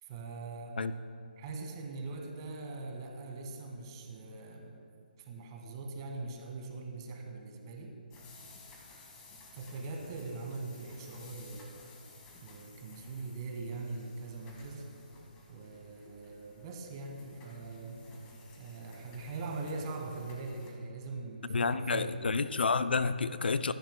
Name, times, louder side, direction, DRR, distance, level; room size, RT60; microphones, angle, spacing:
voice 1, 0.0-0.8 1.4-4.8 5.2-8.0 9.5-11.9 12.4-14.9 15.5-18.0 18.6-22.3, right 3 dB, 30° right, 1 dB, 1.8 m, -42 dB
sound 1, 8.1-20.7, left 2 dB, 20° left, 1.9 m, -55 dB
voice 2, 21.5-23.7, left 4 dB, 75° left, 13 dB, 0.5 m, -29 dB
25.0 x 10.5 x 2.2 m, 2.4 s
figure-of-eight pair, 155°, 5 cm